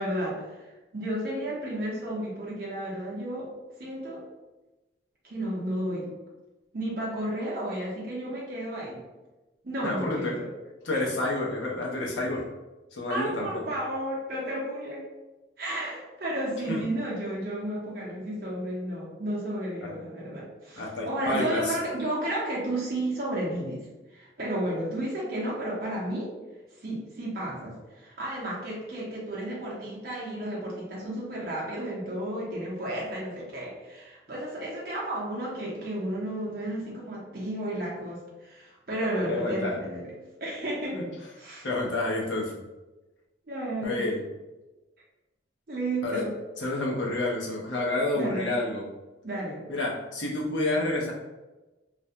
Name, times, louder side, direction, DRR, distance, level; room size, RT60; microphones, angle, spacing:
voice 1, 0.0-3.5 3.8-4.2 5.2-6.1 6.7-9.0 9.6-10.5 10.9-11.1 13.1-15.0 15.6-23.9 24.1-26.3 26.8-40.1 40.4-41.0 41.4-41.7 43.5-44.0 45.7-46.3 48.1-48.6 49.2-49.6, right 1 dB, 50° right, -5 dB, 0.6 m, -32 dB
voice 2, 9.8-10.4 10.8-12.4 12.9-13.6 16.7-16.8 20.8-21.7 39.3-39.8 40.9-41.1 41.6-42.5 43.8-44.2 46.0-46.2 46.6-48.8 49.7-51.1, left 2 dB, 80° left, -3 dB, 0.7 m, -29 dB
2.4 x 2.1 x 2.7 m, 1.1 s
head